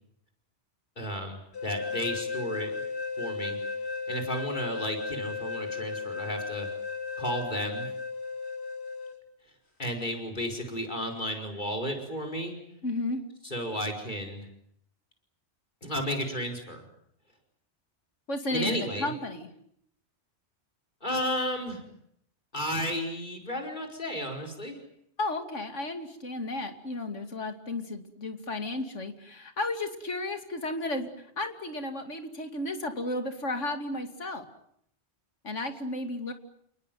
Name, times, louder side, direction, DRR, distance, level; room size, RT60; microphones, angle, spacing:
voice 1, 1.0-2.7 3.2-3.6 4.1-6.7 7.2-7.9 9.8-12.5 13.4-14.5 15.8-16.8 18.5-19.1 21.0-21.8 22.5-24.8, equal, 40° left, 2 dB, 5.3 m, -33 dB
sound 1, 1.5-9.2, left 5 dB, 60° left, 4.1 m, -35 dB
voice 2, 12.8-13.2 18.3-19.5 25.2-34.5 35.4-36.3, left 2 dB, 90° left, 7 dB, 2.9 m, -33 dB
29.5 x 19.5 x 9.4 m, 0.72 s
omnidirectional pair, 1.2 m